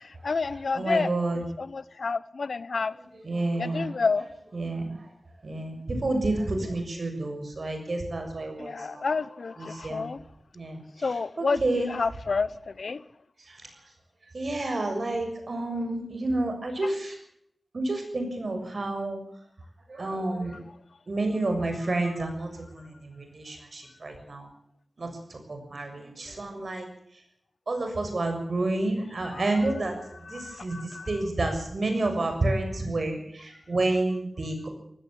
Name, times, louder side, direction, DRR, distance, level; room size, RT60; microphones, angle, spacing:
voice 1, 0.2-1.1 1.6-2.9 3.6-4.2 6.6-6.7 8.6-10.2 11.0-13.0 29.3-29.4 30.3-31.2, left 4 dB, 85° left, 0.9 m, -29 dB
voice 2, 0.7-1.4 3.2-3.9 4.5-5.0 5.4-9.0 9.6-10.1 10.5-10.8 11.4-11.9 14.3-17.2 17.7-19.2 19.9-20.6 21.1-24.4 25.0-26.9 27.7-29.9 30.3-34.7, right 2 dB, 70° right, 6.8 m, -29 dB
18.5 x 16.0 x 8.9 m
wide cardioid pair, 50°, 0 cm